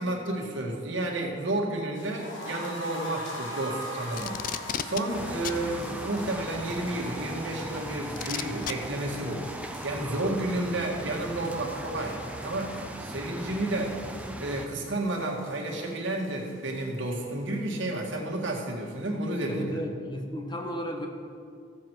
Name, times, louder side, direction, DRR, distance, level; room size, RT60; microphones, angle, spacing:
voice 1, 0.0-4.4 4.8-14.0 14.4-19.8, right 1 dB, 70° right, -1 dB, 1.9 m, -31 dB
sound 1, 1.9-17.8 18.1-18.2 18.5-18.6, equal, 75° left, 1.9 m, -43 dB
Packing tape duct tape, 4.1-5.0 5.4-5.6 6.9-7.0 8.2-8.7 9.8-9.9, left 9 dB, 45° left, 0.4 m, -32 dB
sound 2, 5.1-14.7, right 1 dB, 5° right, 0.5 m, -39 dB
voice 2, 19.4-21.1, equal, 25° left, 2 dB, 1.2 m, -34 dB
15.0 x 7.4 x 4.6 m, 2.2 s
head